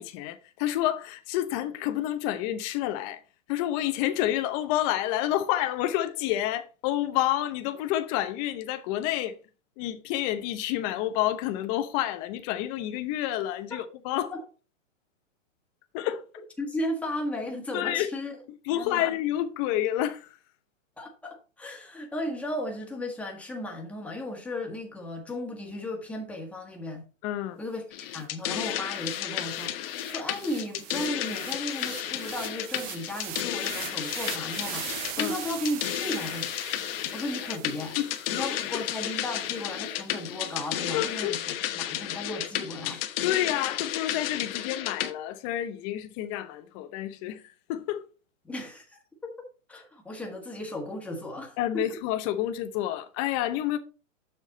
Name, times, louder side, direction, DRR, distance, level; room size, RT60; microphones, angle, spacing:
voice 1, 0.0-3.2 3.5-9.4 9.8-14.3 15.9-16.3 17.7-18.1 18.5-20.4 27.2-27.6 35.2-35.3 38.0-38.5 40.9-41.4 43.2-47.4 47.7-48.1 51.6-53.8, left 13 dB, 25° left, 0.8 m, -29 dB
voice 2, 16.6-18.4 18.7-19.1 21.0-27.0 27.6-38.0 38.3-43.0 48.4-49.3 49.7-51.8, left 1 dB, 5° left, 1.5 m, -35 dB
sound 1, 27.9-45.1, left 12 dB, 45° left, 1.1 m, -33 dB
sound 2, 28.2-28.3 28.6-38.9, right 9 dB, 20° right, 0.7 m, -41 dB
7.4 x 6.1 x 4.0 m
hypercardioid pair, 150°, 39 cm